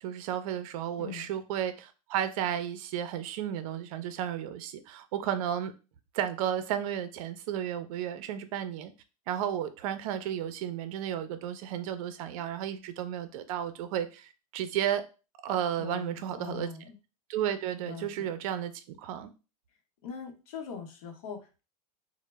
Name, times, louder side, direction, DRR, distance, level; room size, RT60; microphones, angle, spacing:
voice 1, 0.0-5.7 6.1-8.9 9.3-15.0 15.4-16.7 17.3-19.3, right 10 dB, 65° right, 0.4 m, -33 dB
voice 2, 1.0-1.3 15.8-17.0 17.8-18.3 20.0-21.6, left 6 dB, 75° left, 0.8 m, -42 dB
2.0 x 2.0 x 3.2 m
supercardioid pair, 120°, 19 cm